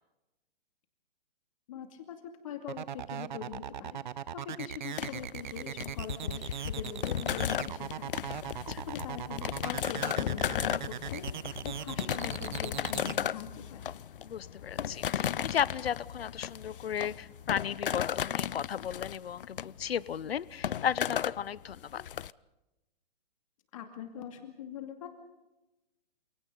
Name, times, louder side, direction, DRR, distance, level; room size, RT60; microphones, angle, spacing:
voice 1, 1.7-4.0 4.3-8.1 8.7-11.3 11.6-13.9 23.7-25.1, left 8 dB, 35° left, 5 dB, 2.4 m, -43 dB
sound 1, 2.7-13.1, right 9 dB, 50° right, 0.8 m, -39 dB
sound 2, 5.0-22.3, left 9 dB, 65° left, 0.7 m, -35 dB
voice 2, 14.2-22.0, left 8 dB, 85° left, 19 dB, 0.9 m, -35 dB
29.5 x 27.0 x 4.0 m, 0.98 s
hypercardioid pair, 170°, 29 cm